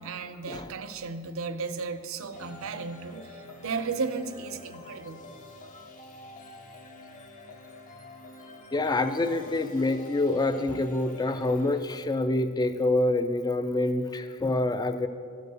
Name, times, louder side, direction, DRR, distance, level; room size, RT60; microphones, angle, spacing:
voice 1, 0.0-5.2, right 4 dB, 65° right, 11 dB, 0.5 m, -34 dB
sound 1, 2.3-11.8, left 2 dB, 35° left, 0.9 m, -47 dB
voice 2, 8.7-15.1, left 2 dB, 20° left, 10 dB, 0.4 m, -26 dB
13.0 x 4.6 x 6.5 m, 2.6 s
head